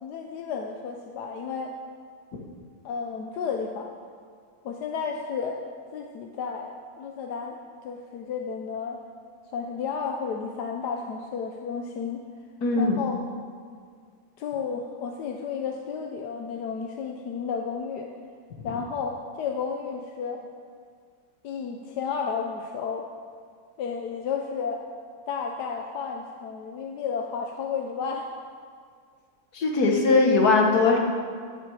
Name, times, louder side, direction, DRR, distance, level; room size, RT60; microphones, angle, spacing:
voice 1, 0.0-1.7 2.8-3.9 4.6-5.6 5.9-7.6 7.8-9.0 9.5-12.2 12.8-13.2 14.4-18.1 18.6-20.5 21.4-23.1 23.8-24.8 25.3-28.3, left 6 dB, 90° left, 2 dB, 1.4 m, -32 dB
voice 2, 12.6-13.0 29.5-31.0, left 3 dB, 70° left, 1 dB, 2.0 m, -20 dB
15.0 x 9.4 x 4.9 m, 2.1 s
omnidirectional pair, 1.7 m